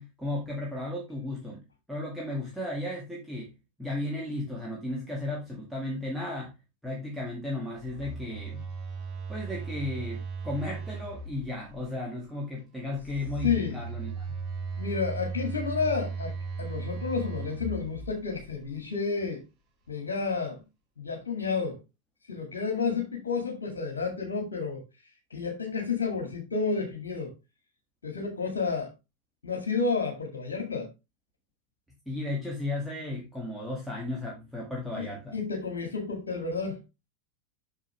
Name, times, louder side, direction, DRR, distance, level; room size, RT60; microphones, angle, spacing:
voice 1, 0.0-3.5 3.8-6.5 6.8-8.6 9.3-14.3 32.1-35.3, left 2 dB, ahead, 2.1 m, -35 dB
Telephone, 7.7-11.8 12.9-18.6, right 4 dB, 30° right, 3.9 m, -37 dB
voice 2, 13.4-13.8 14.8-19.4 19.9-20.6 21.0-21.8 22.3-24.8 25.3-27.3 28.0-28.9 29.4-30.9 34.9-36.8, left 5 dB, 65° left, 2.1 m, -31 dB
7.4 x 6.4 x 3.5 m
figure-of-eight pair, 90°, 0 cm